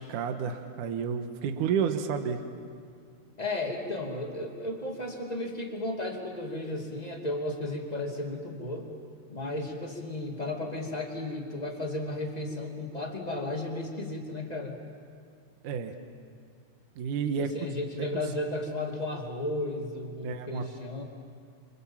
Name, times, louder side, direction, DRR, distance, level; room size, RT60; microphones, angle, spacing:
voice 1, 0.0-2.4 15.6-15.9 17.0-17.5 20.2-20.6, right 7 dB, 65° right, 6 dB, 2.3 m, -30 dB
voice 2, 3.4-8.9 9.3-14.8 17.4-21.0, left 2 dB, 15° left, 1 dB, 1.8 m, -34 dB
30.0 x 26.0 x 7.4 m, 2.3 s
omnidirectional pair, 5.0 m